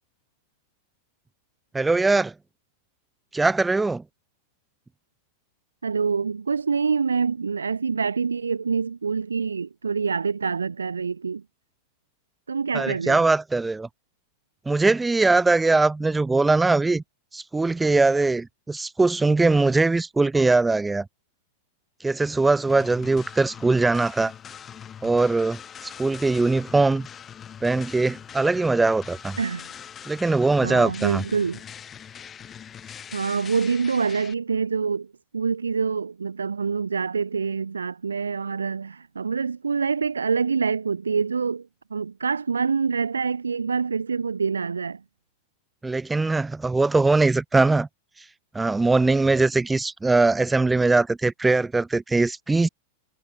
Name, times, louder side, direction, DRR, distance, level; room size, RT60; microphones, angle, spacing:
voice 1, 1.7-2.3 3.3-4.0 12.7-13.9 14.7-17.0 17.3-21.1 22.0-24.3 25.0-27.1 27.6-29.4 30.1-31.2 45.8-47.9 48.5-52.7, right 3 dB, 10° right, 1.8 m, -21 dB
voice 2, 5.8-11.4 12.5-13.2 29.4-29.7 30.6-31.6 33.1-45.0, right 5 dB, 75° right, 1.6 m, -26 dB
sound 1, 22.7-34.3, left 8 dB, 25° left, 4.8 m, -42 dB
figure-of-eight pair, 90°, 0 cm